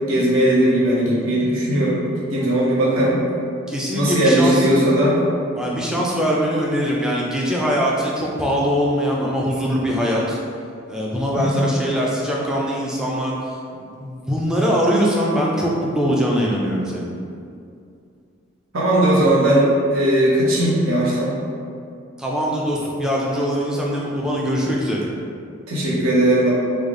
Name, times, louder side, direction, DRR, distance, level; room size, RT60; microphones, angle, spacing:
voice 1, 0.1-3.2 3.9-5.2 11.4-11.7 18.7-21.3 25.7-26.5, right 1 dB, 85° right, -6 dB, 0.9 m, -18 dB
voice 2, 3.7-4.7 5.6-10.4 10.9-13.3 13.7-17.1 22.2-25.0, equal, 5° right, -4 dB, 0.3 m, -22 dB
3.3 x 2.1 x 3.6 m, 2.4 s
head